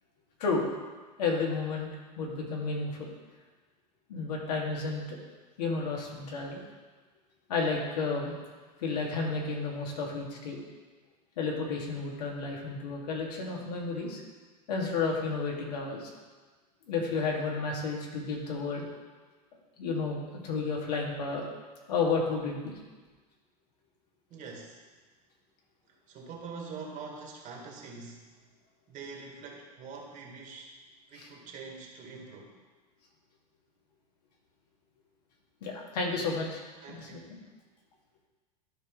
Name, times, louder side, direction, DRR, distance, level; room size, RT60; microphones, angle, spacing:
voice 1, 1.2-1.9 2.2-2.9 4.1-5.2 5.6-6.6 7.5-8.4 8.8-10.6 11.4-14.2 14.7-16.1 16.9-18.9 19.8-21.5 21.9-22.7 31.1-31.3 35.6-36.6 36.9-37.4, left 4 dB, 70° left, -1 dB, 2.0 m, -32 dB
voice 2, 24.3-24.8 26.1-28.3 28.9-30.7 31.1-32.6 36.8-37.3, right 4 dB, 40° right, 0 dB, 1.9 m, -44 dB
12.5 x 4.9 x 3.7 m, 1.3 s
hypercardioid pair, 95°, 21 cm